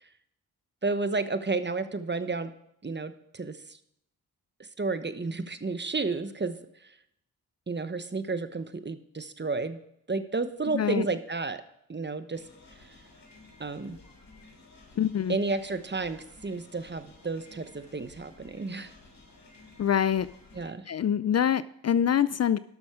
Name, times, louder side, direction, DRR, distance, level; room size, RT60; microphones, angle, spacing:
voice 1, 0.8-2.5 2.8-3.8 4.8-6.6 6.8-6.9 7.7-9.8 10.1-11.6 11.9-12.4 13.6-14.0 15.3-18.9 20.5-20.8, right 3 dB, 30° right, 11 dB, 1.1 m, -31 dB
voice 2, 10.7-11.1 15.0-15.4 19.8-20.3 20.9-22.6, left 9 dB, 45° left, 16 dB, 0.4 m, -25 dB
sound 1, 12.3-20.7, left 3 dB, 60° left, 3.2 m, -54 dB
12.5 x 6.4 x 4.9 m, 0.75 s
supercardioid pair, 45°, 37 cm